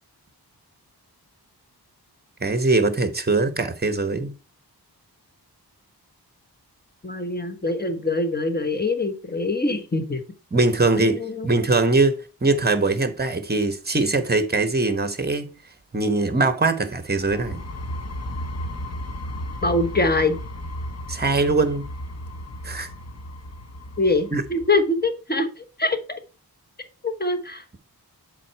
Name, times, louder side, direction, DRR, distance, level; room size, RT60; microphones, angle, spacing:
voice 1, 2.4-4.3 10.5-15.5 15.9-17.6 21.1-21.9 22.6-22.9 24.3-24.4, right 3 dB, 25° right, 1.0 m, -22 dB
voice 2, 7.0-10.2 11.0-11.5 19.6-20.4 24.0-26.2 27.0-27.6, left 2 dB, 25° left, 1.2 m, -24 dB
sound 1, 17.2-24.8, equal, 40° left, 0.8 m, -34 dB
7.6 x 4.1 x 4.5 m
wide cardioid pair, 95°, 39 cm